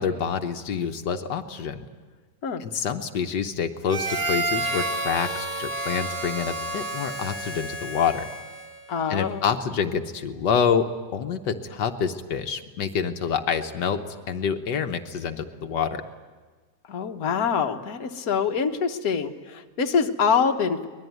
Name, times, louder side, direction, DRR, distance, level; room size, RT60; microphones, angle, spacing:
voice 1, 0.0-1.9 2.6-8.3 9.1-16.0, left 6 dB, 80° left, 6 dB, 1.6 m, -27 dB
Harmonica, 3.9-8.9, right 2 dB, 30° right, 1.8 m, -30 dB
voice 2, 8.9-9.4 16.9-20.9, left 6 dB, 60° left, 4 dB, 1.6 m, -25 dB
24.0 x 20.0 x 9.3 m, 1.4 s
omnidirectional pair, 1.8 m